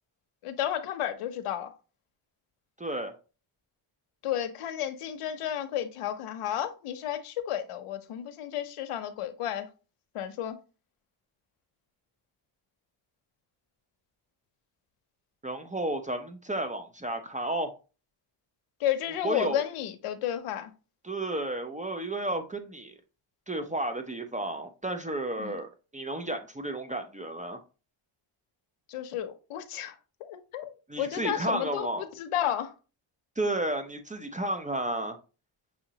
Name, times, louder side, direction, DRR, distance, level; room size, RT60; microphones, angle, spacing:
voice 1, 0.4-1.7 4.2-9.7 10.1-10.6 18.8-20.7 25.4-25.6 28.9-32.7, left 10 dB, 90° left, 0.7 m, -32 dB
voice 2, 2.8-3.1 15.4-17.7 19.2-19.6 21.0-22.9 23.5-27.6 30.9-32.0 33.4-35.2, right 1 dB, 15° right, 0.4 m, -32 dB
6.2 x 2.9 x 2.7 m
cardioid pair, 105°, 50 cm